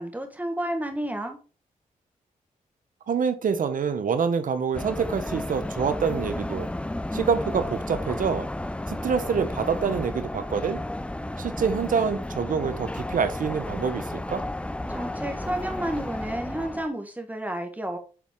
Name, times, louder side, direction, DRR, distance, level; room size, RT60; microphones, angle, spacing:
voice 1, 0.0-1.4 14.9-18.0, right 1 dB, 10° right, 1.6 m, -31 dB
voice 2, 3.1-6.7 7.1-8.5 8.9-10.8 11.4-14.4, right 6 dB, 65° right, 0.9 m, -26 dB
sound 1, 4.7-16.9, left 1 dB, 10° left, 0.4 m, -33 dB
7.1 x 4.1 x 3.7 m
cardioid pair, 55°, 15 cm